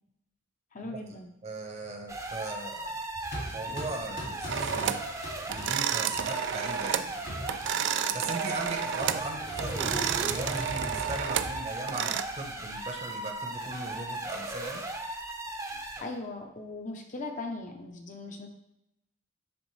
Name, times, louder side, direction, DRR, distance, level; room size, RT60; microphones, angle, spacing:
voice 1, 0.7-1.3 15.7-18.5, left 2 dB, 40° left, 3 dB, 0.7 m, -39 dB
voice 2, 1.4-3.0 3.5-7.2 8.1-14.8, right 2 dB, 35° right, 3 dB, 0.9 m, -39 dB
sound 1, 2.1-16.1, right 2 dB, 15° right, 0.7 m, -37 dB
sound 2, 3.1-6.3 7.0-8.1 9.0-11.6, equal, 65° left, 2.2 m, -39 dB
sound 3, 4.5-5.1 5.5-7.1 7.4-9.3 9.6-12.2, right 9 dB, 65° right, 0.3 m, -31 dB
10.5 x 3.6 x 3.2 m, 0.84 s
head